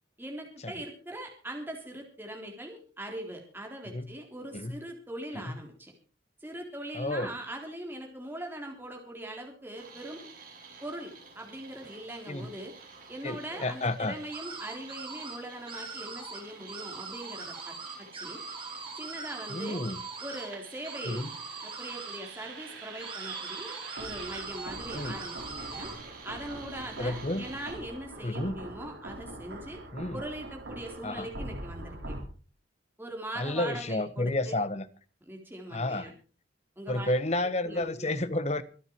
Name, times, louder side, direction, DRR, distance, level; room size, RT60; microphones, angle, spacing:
voice 1, 0.2-5.9 6.4-10.2 10.8-12.7 13.1-18.4 18.9-19.8 20.2-21.3 21.6-25.9 26.2-29.8 30.1-32.1 33.0-34.5 35.2-36.1 36.8-37.1 37.6-38.2, right 1 dB, 10° right, 3.5 m, -41 dB
voice 2, 6.9-7.3 12.3-12.5 13.2-14.2 19.5-20.0 21.0-21.3 24.9-25.2 27.0-27.5 28.2-28.5 29.9-30.2 31.0-31.3 33.4-34.9 35.7-36.1 36.9-38.6, left 2 dB, 35° left, 1.2 m, -31 dB
sound 1, 9.7-27.7, right 4 dB, 45° right, 7.6 m, -51 dB
sound 2, 14.3-15.4 15.7-16.4 16.7-20.5 20.8-22.2 23.0-25.9, right 4 dB, 25° right, 3.9 m, -41 dB
sound 3, 20.1-32.2, right 2 dB, 70° right, 4.6 m, -43 dB
24.0 x 9.1 x 4.6 m
head